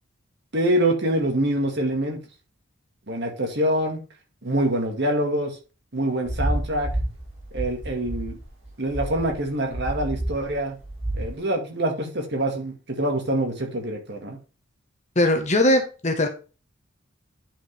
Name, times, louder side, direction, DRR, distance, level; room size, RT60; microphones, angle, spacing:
voice 1, 0.5-2.2 3.1-4.0 4.4-5.6 5.9-6.9 7.5-8.4 8.8-10.8 11.1-14.4, right 1 dB, 55° right, 2.0 m, -25 dB
sound 1, 6.3-11.4, right 1 dB, 35° right, 4.9 m, -29 dB
voice 2, 15.1-16.3, left 1 dB, 35° left, 1.3 m, -20 dB
10.0 x 5.0 x 3.5 m
head